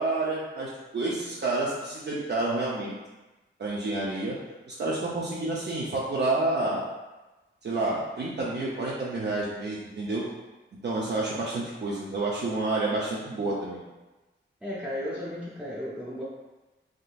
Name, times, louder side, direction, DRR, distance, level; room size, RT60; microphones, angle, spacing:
voice 1, 0.0-3.0 3.6-4.4 4.7-6.8 7.6-10.3 10.8-13.8, right 2 dB, 60° right, -5 dB, 0.5 m, -29 dB
voice 2, 14.6-16.2, equal, 5° right, -9 dB, 0.5 m, -34 dB
3.6 x 2.5 x 2.3 m, 1.1 s
wide cardioid pair, 135°, 20 cm